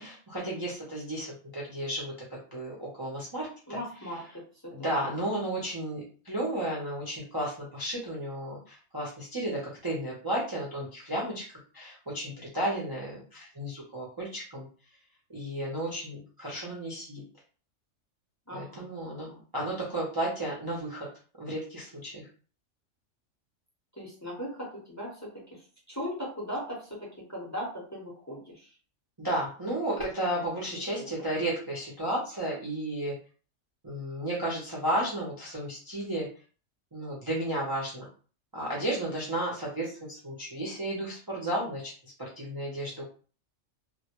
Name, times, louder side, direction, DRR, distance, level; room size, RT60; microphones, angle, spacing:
voice 1, 0.0-3.8 4.7-11.4 11.7-14.7 15.3-17.2 18.5-19.3 19.5-21.1 21.4-22.3 29.2-33.1 33.8-36.3 36.9-38.1 38.5-43.0, right 1 dB, 35° right, -5 dB, 0.3 m, -33 dB
voice 2, 3.7-4.2 4.6-4.7 5.1-5.2 18.5-19.4 24.0-25.2 25.5-25.6 25.9-28.7 30.7-31.1, equal, 20° left, -4 dB, 0.5 m, -38 dB
2.1 x 2.1 x 2.8 m, 0.40 s
omnidirectional pair, 1.3 m